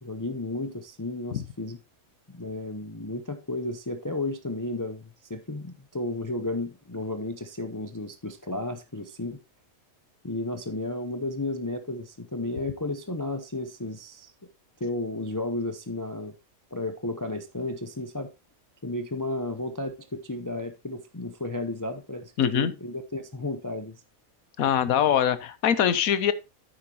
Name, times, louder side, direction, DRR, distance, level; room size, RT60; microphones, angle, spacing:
voice 1, 0.0-1.8 2.3-9.4 10.2-14.3 14.8-16.3 16.7-18.3 18.8-24.0, left 2 dB, 25° left, 0.4 m, -33 dB
voice 2, 22.4-22.7 24.6-26.3, left 9 dB, 80° left, 1.3 m, -23 dB
9.5 x 8.9 x 2.9 m
omnidirectional pair, 1.5 m